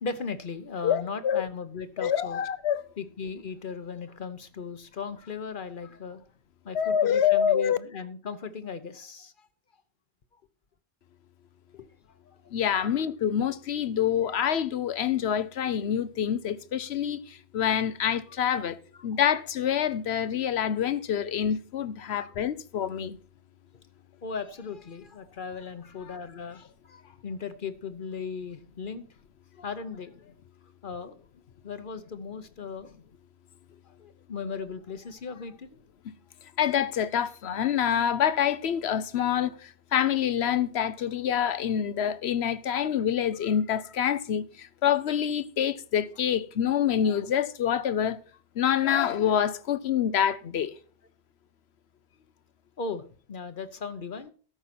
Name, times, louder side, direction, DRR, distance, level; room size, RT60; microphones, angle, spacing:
voice 1, 0.0-2.4 3.0-6.2 6.6-9.5 11.7-11.9 12.3-12.4 18.9-19.2 22.0-22.3 24.2-29.0 29.6-30.3 30.8-31.2 31.6-32.9 33.8-35.7 47.0-47.2 52.8-54.3, left 5 dB, 55° left, 1.0 m, -37 dB
voice 2, 0.8-1.5 2.0-2.8 6.7-7.8 12.5-23.2 36.6-48.2 48.6-50.7, left 9 dB, 85° left, 1.0 m, -26 dB
13.0 x 5.5 x 5.9 m
omnidirectional pair, 1.1 m